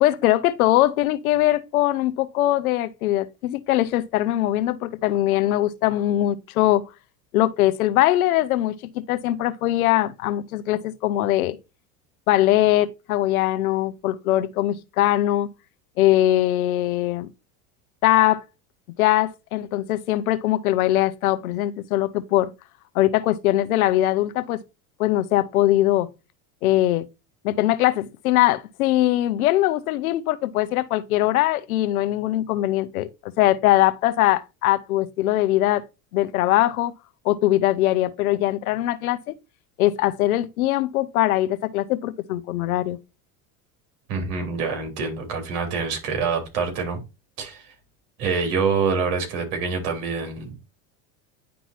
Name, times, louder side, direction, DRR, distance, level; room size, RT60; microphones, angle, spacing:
voice 1, 0.0-6.8 7.3-8.7 9.1-11.6 12.3-15.5 16.0-17.3 18.0-18.4 19.0-22.5 22.9-24.6 25.0-26.1 26.6-27.1 27.4-35.9 36.1-36.9 37.2-39.3 39.8-43.0, left 14 dB, 90° left, 0.9 m, -21 dB
voice 2, 44.1-47.0 47.4-47.7 48.2-50.6, right 5 dB, 70° right, 3.8 m, -26 dB
10.5 x 3.9 x 2.9 m
supercardioid pair, 105°, 42 cm